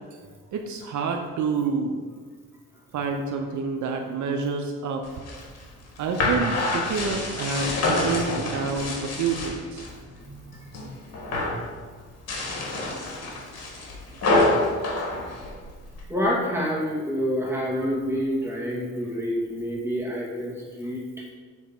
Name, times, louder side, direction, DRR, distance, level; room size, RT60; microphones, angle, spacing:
voice 1, 0.5-2.0 2.9-5.0 6.0-9.8, right 5 dB, 70° right, 3 dB, 0.8 m, -28 dB
sound 1, 5.0-9.9 10.3-10.9 11.1-11.6 12.1-16.0, left 2 dB, 55° left, 1.8 m, -27 dB
voice 2, 10.1-10.4 16.1-21.2, equal, 10° right, -4 dB, 2.3 m, -28 dB
7.4 x 3.8 x 5.9 m, 1.5 s
cardioid pair, 90°, 30 cm